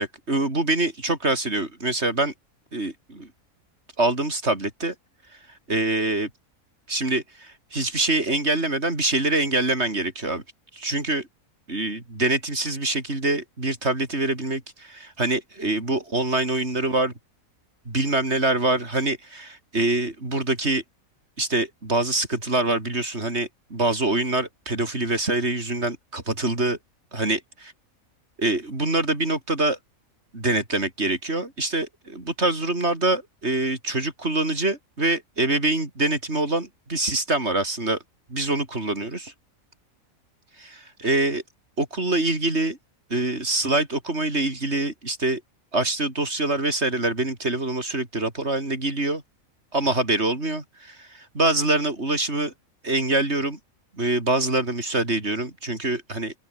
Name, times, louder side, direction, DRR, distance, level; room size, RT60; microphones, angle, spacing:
voice 1, 0.0-2.3 2.7-3.3 4.0-4.9 5.7-6.3 6.9-10.4 10.7-11.3 11.7-17.1 17.9-20.8 21.4-26.8 27.1-27.4 28.4-29.8 30.3-38.0 38.3-39.3 40.6-41.4 41.8-42.8 43.1-45.4 45.7-49.2 49.7-52.5 52.8-53.6 53.9-56.3, right 2 dB, 50° right, 5.0 m, -25 dB
open air
omnidirectional pair, 1.5 m